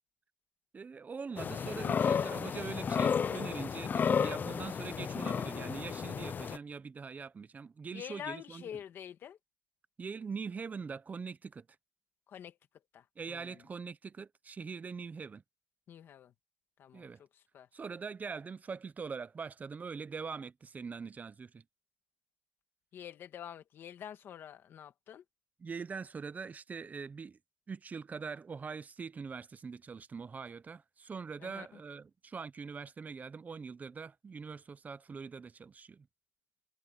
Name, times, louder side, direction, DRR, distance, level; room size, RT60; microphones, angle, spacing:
voice 1, 0.7-8.7 10.0-11.7 13.2-15.4 16.9-17.2 17.7-21.6 25.6-27.4 27.7-36.1, right 5 dB, 45° right, 0.8 m, -43 dB
sound 1, 1.4-6.6, left 7 dB, 55° left, 0.4 m, -32 dB
voice 2, 7.9-9.4 12.3-12.6 12.9-13.6 15.9-16.3 16.8-17.1 17.5-17.7 22.9-25.2 31.4-31.7, left 9 dB, 85° left, 1.7 m, -46 dB
cardioid pair, 75°, 4 cm